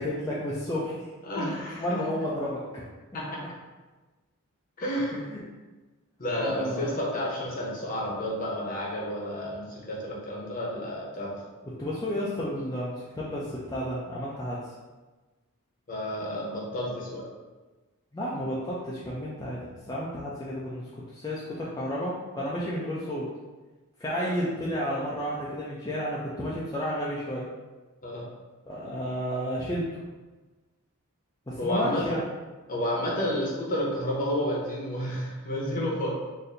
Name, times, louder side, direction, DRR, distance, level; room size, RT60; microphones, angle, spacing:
voice 1, 0.0-1.1 1.4-1.5 1.8-2.8 5.3-5.4 6.4-6.9 11.8-14.7 18.1-23.3 24.0-27.5 28.7-29.9 31.5-32.3, equal, 15° left, -7 dB, 0.4 m, -32 dB
voice 2, 1.2-2.0 3.1-3.4 4.8-5.2 6.2-11.4 15.9-17.2 24.2-24.3 28.0-28.2 31.6-32.2 32.7-36.1, equal, 40° left, -3 dB, 0.8 m, -30 dB
4.1 x 2.6 x 2.6 m, 1.2 s
head